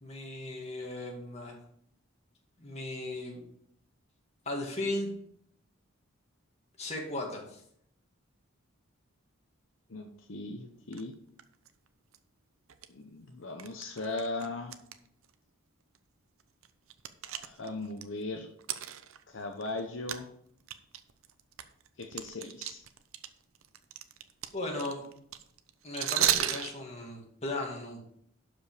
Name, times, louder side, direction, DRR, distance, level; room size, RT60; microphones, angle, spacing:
voice 1, 0.0-1.5 2.6-3.4 4.5-5.1 6.8-7.6 24.5-25.0 25.8-28.0, left 2 dB, 30° left, 0 dB, 2.2 m, -36 dB
voice 2, 9.9-11.1 12.9-14.7 17.3-18.5 19.3-20.3 22.0-22.8, left 2 dB, 65° left, 4 dB, 0.8 m, -38 dB
sound 1, 10.9-11.0 11.4-11.7 12.1-12.2 12.7-12.9 13.6-15.0 15.2-15.3 16.0-16.1 16.4-18.0 18.6-19.8 20.1-20.2 20.6-23.3 23.6-26.7, right 11 dB, 80° right, 0.7 m, -33 dB
12.0 x 5.4 x 4.9 m, 0.70 s
head